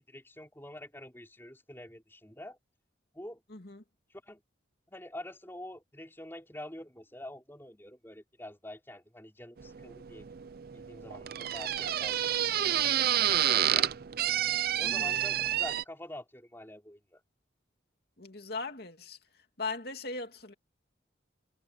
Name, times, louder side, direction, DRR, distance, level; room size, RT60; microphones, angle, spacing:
voice 1, 0.0-2.6 3.1-3.4 4.2-4.4 4.9-10.3 10.7-12.4 13.2-13.9 14.8-17.2, left 1 dB, 10° left, 4.8 m, -46 dB
voice 2, 3.5-3.8 14.8-15.1 18.2-19.2 19.6-20.5, left 3 dB, 55° left, 2.8 m, -39 dB
sound 1, 9.6-15.8, right 11 dB, 55° right, 0.5 m, -29 dB
head